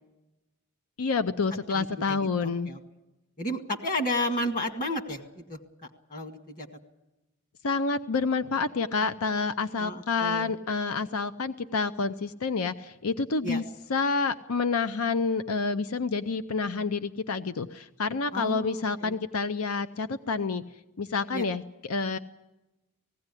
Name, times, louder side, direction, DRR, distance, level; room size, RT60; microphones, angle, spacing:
voice 1, 1.0-2.7 7.6-13.6 13.9-20.6 21.0-22.2, left 4 dB, 85° left, 11 dB, 0.6 m, -28 dB
voice 2, 1.7-2.8 3.4-5.6 6.1-6.7 9.8-10.5 13.4-13.6 18.3-19.2 21.3-21.4, left 1 dB, 40° left, 5 dB, 1.9 m, -32 dB
18.5 x 16.5 x 9.8 m, 0.99 s
head